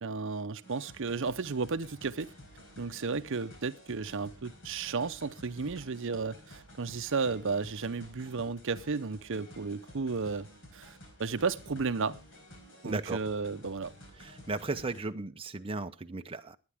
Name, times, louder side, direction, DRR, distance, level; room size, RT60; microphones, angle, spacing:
voice 1, 0.0-2.3 2.8-10.5 10.7-12.2 12.8-13.9, right 4 dB, 60° right, 0.7 m, -33 dB
sound 1, 0.6-15.0, equal, 65° left, 4.7 m, -52 dB
voice 2, 12.8-13.2 14.2-16.6, right 3 dB, 25° right, 0.7 m, -36 dB
21.5 x 9.6 x 3.5 m
head